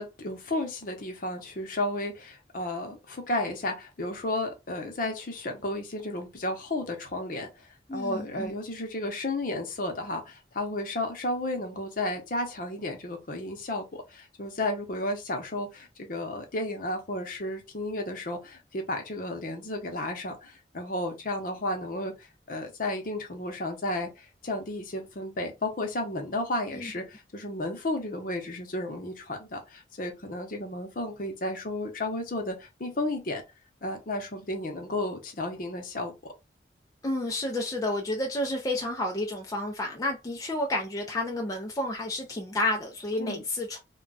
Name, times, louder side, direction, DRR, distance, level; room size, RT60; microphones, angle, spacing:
voice 1, 0.0-33.4 33.8-36.1 43.2-43.4, left 1 dB, 50° left, 0.7 m, -33 dB
voice 2, 7.9-8.5 26.7-26.9 37.0-43.8, left 1 dB, 20° left, 0.4 m, -30 dB
2.2 x 2.2 x 3.8 m
head